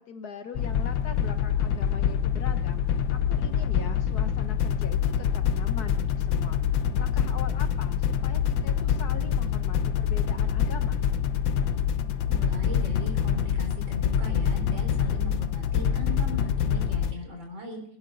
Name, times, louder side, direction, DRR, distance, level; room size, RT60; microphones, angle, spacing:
voice 1, 0.0-2.8 3.1-11.1, left 6 dB, 60° left, 8 dB, 1.5 m, -41 dB
sound 1, 0.6-17.1, left 8 dB, 80° left, 1.6 m, -26 dB
voice 2, 12.2-17.8, equal, 75° right, 3 dB, 4.7 m, -39 dB
21.0 x 12.0 x 4.0 m, 0.66 s
omnidirectional pair, 2.1 m